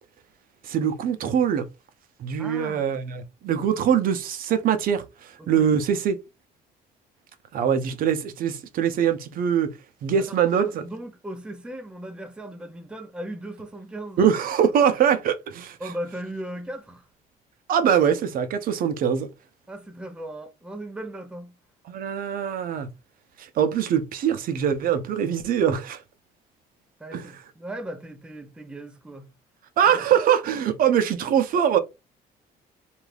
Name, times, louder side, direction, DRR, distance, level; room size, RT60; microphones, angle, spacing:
voice 1, 0.6-1.7 2.2-6.2 7.5-9.7 10.0-10.7 14.2-15.8 17.7-19.3 21.9-22.9 23.4-26.0 27.1-27.3 29.8-31.8, right 8 dB, 55° right, 0.5 m, -23 dB
voice 2, 2.4-2.9 5.4-5.7 10.2-14.2 15.8-17.1 19.7-21.5 27.0-29.3 29.9-30.0, right 1 dB, 5° right, 0.5 m, -37 dB
2.5 x 2.3 x 3.2 m
cardioid pair, 110°, 17 cm